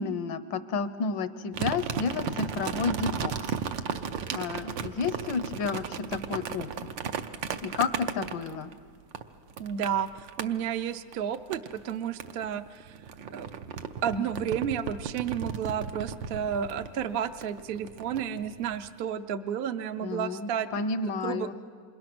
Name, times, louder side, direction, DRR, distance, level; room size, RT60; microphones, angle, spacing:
voice 1, 0.0-3.3 4.3-6.7 7.6-8.7 20.0-21.5, left 5 dB, 80° left, 12 dB, 1.6 m, -31 dB
sound 1, 1.5-8.7 9.1-10.5 11.1-11.9 12.2-18.9, right 7 dB, 80° right, 1.6 m, -35 dB
voice 2, 9.6-12.9 13.3-13.5 14.0-20.7 21.2-21.5, right 8 dB, 60° right, 9 dB, 0.6 m, -31 dB
27.5 x 27.5 x 6.1 m, 2.3 s
omnidirectional pair, 2.0 m